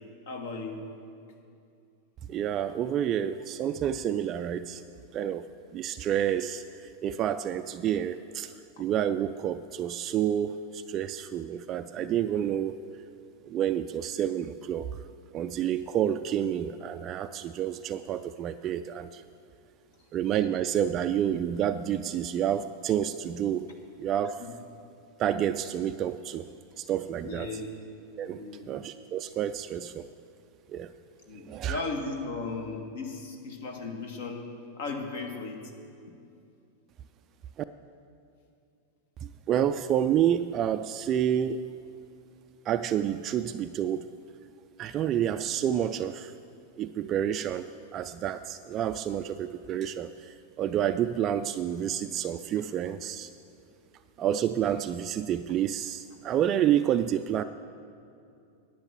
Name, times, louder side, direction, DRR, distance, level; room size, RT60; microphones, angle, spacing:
voice 1, 0.3-0.8 11.9-12.1 24.4-24.5 27.2-27.7 28.3-28.7 31.3-34.5 34.8-35.6, left 3 dB, 55° left, 3 dB, 1.6 m, -36 dB
voice 2, 2.3-4.8 5.1-5.4 5.7-12.7 13.4-14.9 15.3-19.2 20.1-23.7 24.0-24.4 25.2-26.5 26.8-27.5 28.2-28.4 28.7-30.0 30.7-30.9 31.5-31.8 39.2-41.6 42.7-44.0 44.8-46.3 46.8-47.7 47.9-53.3 54.2-57.4, right 10 dB, 30° right, 10 dB, 0.3 m, -29 dB
10.5 x 8.8 x 7.0 m, 2.6 s
figure-of-eight pair, 90°, 0 cm